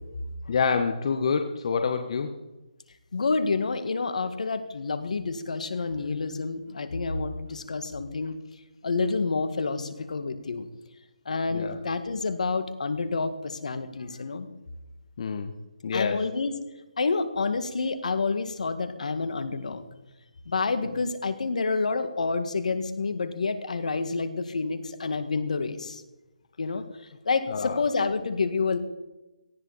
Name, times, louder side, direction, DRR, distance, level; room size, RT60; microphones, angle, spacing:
voice 1, 0.5-2.3 11.5-11.8 15.2-15.5 15.8-16.2 20.9-21.0 27.5-27.8, left 5 dB, 50° left, 7 dB, 1.2 m, -27 dB
voice 2, 3.1-8.4 8.8-10.7 11.3-14.5 15.9-16.5 17.0-19.8 20.5-26.0 26.6-26.8 27.3-28.8, left 4 dB, 70° left, 10 dB, 1.9 m, -28 dB
18.0 x 14.0 x 4.2 m, 1.0 s
hypercardioid pair, 155°, 4 cm